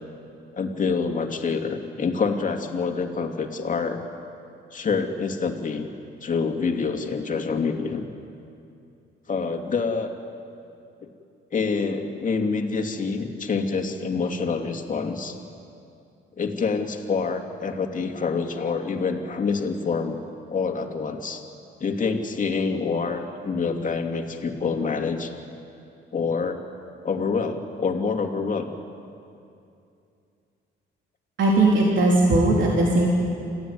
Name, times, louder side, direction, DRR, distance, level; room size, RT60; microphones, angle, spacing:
voice 1, 0.5-4.0 4.7-5.9 6.2-8.0 9.3-10.1 11.5-15.4 16.4-20.2 20.5-21.4 21.8-25.3 26.1-26.7 27.0-28.7, left 4 dB, 40° left, 3 dB, 2.6 m, -26 dB
voice 2, 31.4-33.1, right 2 dB, 70° right, -3 dB, 3.8 m, -18 dB
27.5 x 15.5 x 9.6 m, 2.6 s
cardioid pair, 90°, 20 cm